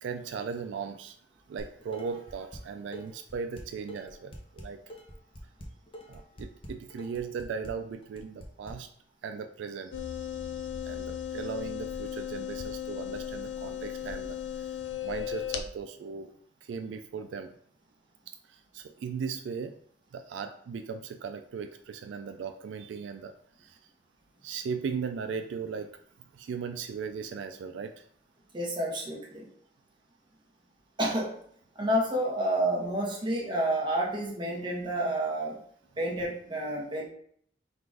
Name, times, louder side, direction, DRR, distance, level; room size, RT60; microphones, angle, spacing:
voice 1, 0.0-1.2 1.5-4.8 6.1-8.9 9.2-14.8 15.0-16.3 16.6-17.5 18.5-19.8 20.1-23.8 24.4-28.1, right 5 dB, 80° right, 7 dB, 0.3 m, -38 dB
Dishes pots and pans, 1.6-2.6 2.9-8.7, equal, 30° left, 0.7 m, -45 dB
sound 1, 9.9-15.6, left 9 dB, 70° left, 0.5 m, -36 dB
voice 2, 28.5-29.5 31.0-31.4 31.7-35.6 36.0-37.1, right 1 dB, 25° right, -3 dB, 1.1 m, -29 dB
3.9 x 2.5 x 4.7 m, 0.63 s
head